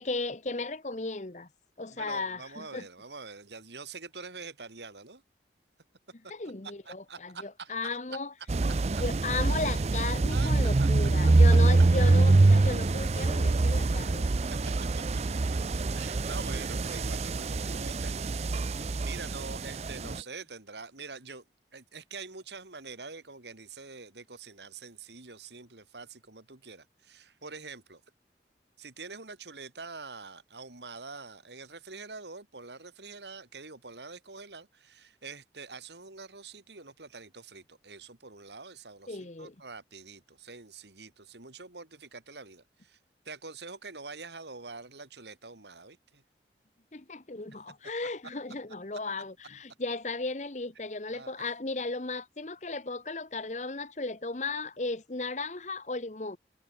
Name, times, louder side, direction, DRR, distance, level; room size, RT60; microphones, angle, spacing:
voice 1, 0.0-1.5 1.8-2.8 6.3-8.3 9.0-14.3 39.1-39.5 46.9-56.4, left 3 dB, 40° left, 1.0 m, -35 dB
voice 2, 1.9-5.2 6.2-6.3 6.8-8.0 10.3-10.9 11.2-11.6 14.5-14.6 15.0-15.1 15.9-18.4 18.8-21.4 21.7-28.0 28.8-43.0 43.2-46.2 47.7-47.8 48.0-48.1 51.1-51.5, right 4 dB, 80° right, 3.0 m, -45 dB
sound 1, 8.5-20.2, right 2 dB, 40° right, 0.5 m, -25 dB
head